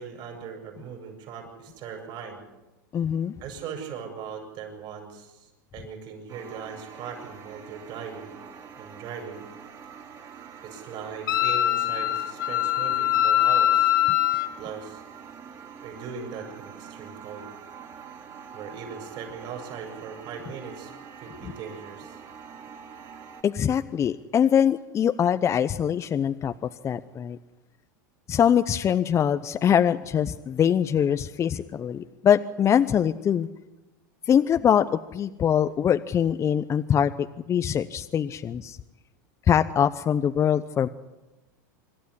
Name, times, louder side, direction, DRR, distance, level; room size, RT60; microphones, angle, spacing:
voice 1, 0.0-2.4 3.4-8.3 8.8-9.4 10.6-14.0 14.6-15.0 15.8-17.5 18.5-20.9 21.2-22.2, right 6 dB, 50° right, 2 dB, 7.6 m, -39 dB
voice 2, 2.9-3.3 21.4-21.5 23.4-26.5 26.8-27.4 28.3-33.5 34.3-38.8 39.5-40.9, left 8 dB, 30° left, 10 dB, 0.8 m, -23 dB
sound 1, 6.3-23.4, right 7 dB, 35° right, 3.8 m, -45 dB
Wind instrument woodwind instrument, 11.3-14.5, left 12 dB, 85° left, 1.3 m, -22 dB
26.0 x 12.5 x 9.8 m, 1.1 s
hypercardioid pair, 110°, 10 cm